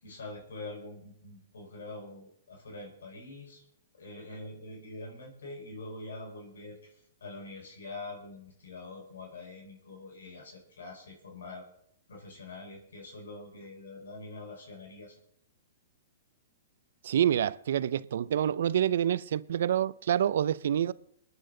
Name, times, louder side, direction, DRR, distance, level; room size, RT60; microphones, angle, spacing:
voice 1, 0.0-3.6 3.9-11.6 12.1-15.1, left 2 dB, 85° left, 4.8 m, -45 dB
voice 2, 17.0-20.9, right 10 dB, 70° right, 0.5 m, -27 dB
22.5 x 9.9 x 3.9 m
hypercardioid pair, 140°, 0 cm